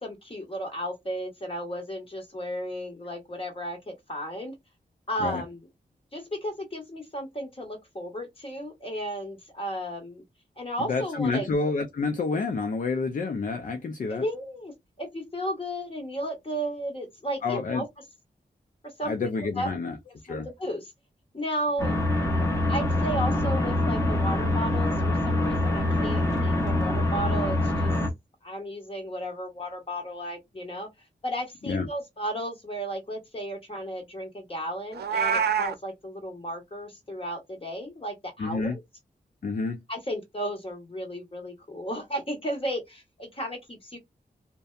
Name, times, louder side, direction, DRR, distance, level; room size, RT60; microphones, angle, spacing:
voice 1, 0.0-4.6 5.1-5.7 6.1-10.2 10.6-11.5 14.1-17.8 18.8-19.3 19.6-19.7 20.3-20.9 21.3-22.0 22.6-27.9 28.4-30.9 31.2-38.8 39.9-44.0, equal, 35° left, 1.3 m, -34 dB
voice 2, 10.8-14.2 17.4-17.8 19.0-20.0 20.2-20.5 31.7-31.9 38.4-38.8 39.4-39.8, left 4 dB, 50° left, 0.5 m, -28 dB
sound 1, 21.8-28.1, left 1 dB, 15° left, 1.0 m, -25 dB
Meow, 34.9-35.7, right 7 dB, 75° right, 0.4 m, -25 dB
2.6 x 2.2 x 2.3 m
wide cardioid pair, 75°, 17 cm